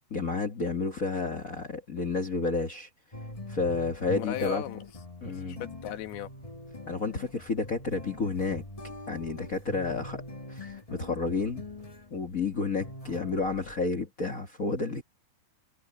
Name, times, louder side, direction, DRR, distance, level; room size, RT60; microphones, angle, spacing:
voice 1, 0.1-2.9 3.5-4.6 5.2-5.6 6.9-10.2 10.5-11.7 12.1-15.0, left 4 dB, 55° left, 0.9 m, -31 dB
sound 1, 3.1-12.3 12.8-13.7, left 1 dB, 25° left, 0.7 m, -43 dB
voice 2, 4.2-4.8 5.4-6.3, left 11 dB, 85° left, 3.4 m, -36 dB
omnidirectional pair, 4.4 m